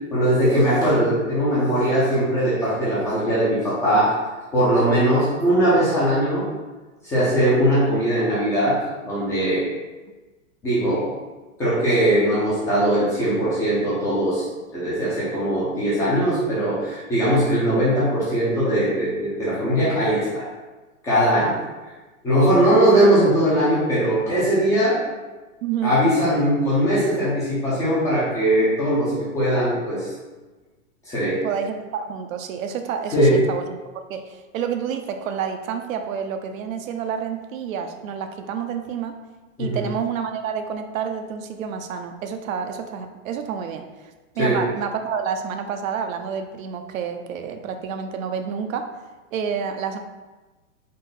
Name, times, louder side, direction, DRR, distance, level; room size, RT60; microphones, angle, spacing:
voice 1, 0.1-4.1 4.5-6.5 7.0-8.8 9.0-9.6 10.6-11.1 11.6-14.4 14.7-20.5 21.0-21.4 22.2-25.0 25.8-30.1 31.1-31.4 33.1-33.4 39.6-39.8 44.4-44.6, right 1 dB, 10° left, -10 dB, 0.3 m, -20 dB
voice 2, 25.6-26.0 31.4-39.2 39.6-48.9 49.3-50.0, right 7 dB, 80° right, 6 dB, 0.6 m, -29 dB
3.7 x 2.1 x 3.8 m, 1.2 s
hypercardioid pair, 140°, 40 cm